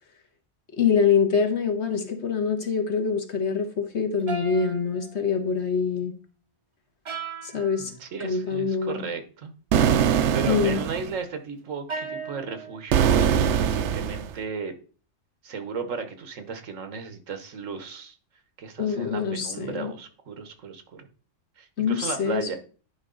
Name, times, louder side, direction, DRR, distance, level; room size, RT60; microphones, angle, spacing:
voice 1, 0.8-6.1 7.4-7.9 8.2-9.0 10.5-10.8 18.8-19.9 21.8-22.6, left 6 dB, 60° left, 5 dB, 1.5 m, -25 dB
sound 1, 4.3-5.4 7.0-7.9 11.9-12.9, right 5 dB, 30° right, 0.6 m, -36 dB
voice 2, 7.8-9.5 9.8-14.7 15.4-18.1 18.6-21.1 21.6-22.6, right 5 dB, 85° right, 8 dB, 1.5 m, -35 dB
sound 2, 9.7-11.1 12.9-14.3, right 8 dB, 70° right, 0.9 m, -22 dB
10.5 x 4.9 x 3.8 m, 0.39 s
omnidirectional pair, 1.3 m